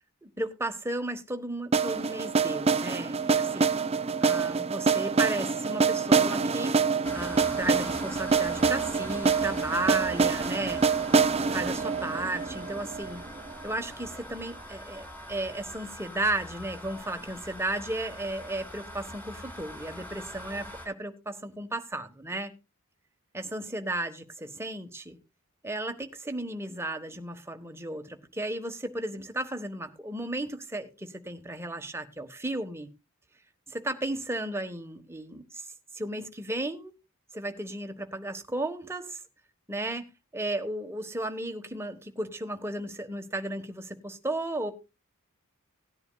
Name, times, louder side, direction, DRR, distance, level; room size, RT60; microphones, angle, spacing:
voice 1, 0.2-3.8 4.2-6.8 7.1-10.8 11.5-13.2 13.6-22.5 23.3-25.2 25.6-32.9 33.7-35.7 35.9-36.9 37.3-39.2 39.7-40.1 40.3-44.7, right 1 dB, 10° right, 1.3 m, -34 dB
sound 1, 1.7-13.6, right 5 dB, 30° right, 0.6 m, -26 dB
sound 2, 7.0-20.9, equal, 10° left, 3.8 m, -43 dB
18.0 x 10.5 x 2.3 m
head